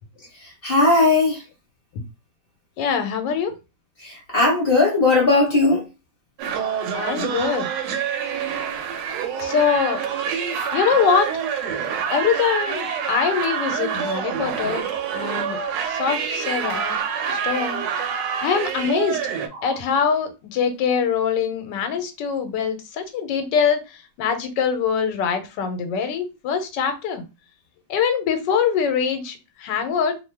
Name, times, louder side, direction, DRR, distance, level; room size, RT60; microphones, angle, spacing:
voice 1, 0.6-1.4 4.0-5.8 19.6-19.7, left 3 dB, 40° left, -2 dB, 1.0 m, -18 dB
voice 2, 2.8-3.5 6.9-7.7 9.4-10.0 10.7-11.3 12.1-14.9 15.1-15.6 15.8-17.0 17.3-18.1 18.4-19.2 19.6-27.2 27.9-30.2, left 6 dB, 90° left, 8 dB, 1.3 m, -23 dB
sound 1, 6.4-19.5, right 7 dB, 85° right, 1.2 m, -26 dB
2.9 x 2.1 x 3.2 m, 0.27 s
omnidirectional pair, 1.9 m